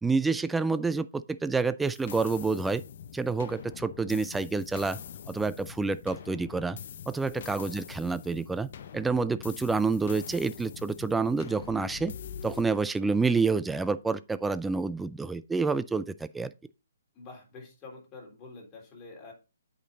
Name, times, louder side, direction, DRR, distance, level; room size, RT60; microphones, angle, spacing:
voice 1, 0.0-2.8 3.1-5.0 5.3-6.8 7.1-8.7 8.9-12.1 12.4-16.5, right 4 dB, 5° right, 0.4 m, -28 dB
sound 1, 1.8-12.6, left 8 dB, 55° left, 0.8 m, -44 dB
voice 2, 17.1-19.3, left 3 dB, 20° left, 3.4 m, -47 dB
8.4 x 5.2 x 3.9 m
hypercardioid pair, 140°, 0 cm